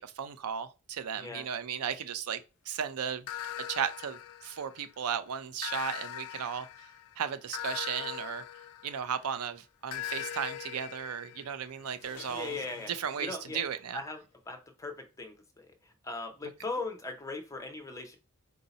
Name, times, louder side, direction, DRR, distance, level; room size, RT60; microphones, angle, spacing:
voice 1, 0.0-2.4 2.7-3.3 3.7-6.9 7.2-8.4 8.8-12.6 12.9-14.0, right 8 dB, 85° right, 0.5 m, -35 dB
voice 2, 1.1-1.4 12.3-12.9 13.2-13.6 13.9-18.2, left 3 dB, 15° left, 0.6 m, -39 dB
sound 1, 3.3-5.0 5.6-9.3 9.9-13.6, left 11 dB, 85° left, 0.3 m, -42 dB
3.9 x 2.7 x 4.0 m
head